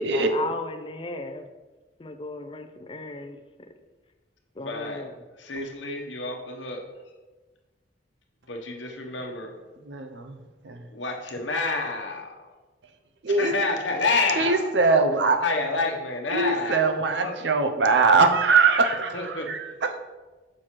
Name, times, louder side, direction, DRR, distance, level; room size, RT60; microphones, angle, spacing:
voice 1, 0.1-1.5 2.0-3.7 4.5-5.2, left 3 dB, 30° left, 7 dB, 0.5 m, -36 dB
voice 2, 4.7-5.0 5.4-6.8 8.5-9.5 10.9-12.3 13.3-14.7 15.4-17.4 19.1-19.5, left 3 dB, 80° left, 2 dB, 1.0 m, -29 dB
voice 3, 9.9-10.4 10.6-10.8 13.2-13.6 14.4-15.4 16.3-19.7, right 4 dB, 65° right, 7 dB, 0.6 m, -22 dB
6.3 x 3.2 x 5.8 m, 1.2 s
head